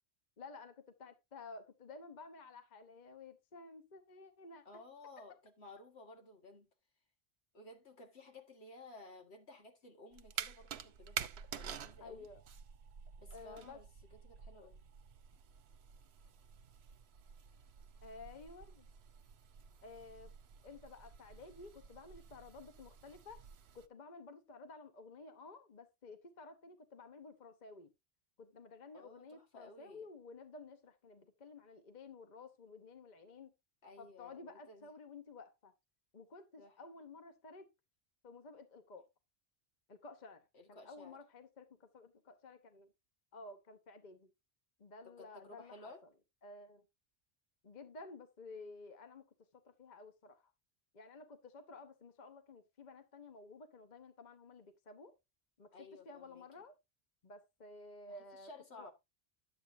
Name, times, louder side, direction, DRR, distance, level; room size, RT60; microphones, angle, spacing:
voice 1, 0.4-4.8 5.2-5.4 12.0-12.4 13.3-13.8 18.0-18.9 19.8-20.3 20.6-23.4 23.7-27.9 28.4-33.5 34.0-35.7 36.1-37.7 38.2-39.1 39.9-42.9 43.3-44.3 44.8-45.9 46.4-46.8 47.6-49.3 49.6-50.5 50.9-55.1 55.6-55.7 56.0-56.7 57.2-58.5 58.8-58.9, left 3 dB, 45° left, 1.0 m, -53 dB
voice 2, 4.7-6.7 7.5-12.3 13.2-14.8 28.9-30.1 33.8-34.9 36.6-36.8 40.5-41.2 45.0-46.0 55.7-56.6 58.1-58.9, left 2 dB, 75° left, 2.1 m, -56 dB
sound 1, 10.1-23.9, right 8 dB, 75° right, 0.9 m, -49 dB
11.0 x 8.1 x 2.6 m
omnidirectional pair, 1.1 m